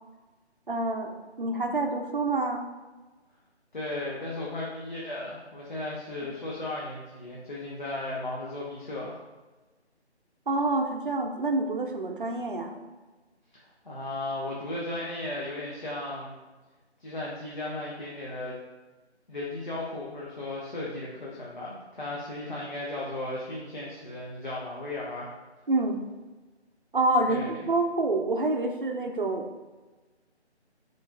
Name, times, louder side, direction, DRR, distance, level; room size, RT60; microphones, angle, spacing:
voice 1, 0.7-2.7 10.5-12.8 25.7-26.0 26.9-29.5, right 2 dB, 50° right, 4 dB, 0.6 m, -27 dB
voice 2, 3.7-9.2 13.8-16.4 17.0-18.6 19.3-25.3 27.3-27.6, left 2 dB, 45° left, -5 dB, 0.8 m, -35 dB
5.4 x 3.9 x 2.5 m, 1.2 s
figure-of-eight pair, 170°, 34 cm